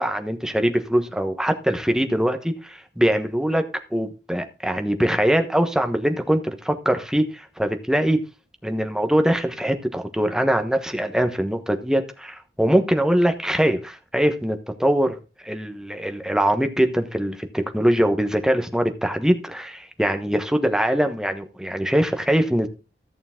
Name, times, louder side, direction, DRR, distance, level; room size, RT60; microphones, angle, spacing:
voice 1, 0.0-3.6 3.9-8.2 8.6-22.7, equal, 5° right, 1.2 m, -22 dB
14.0 x 6.9 x 3.7 m
head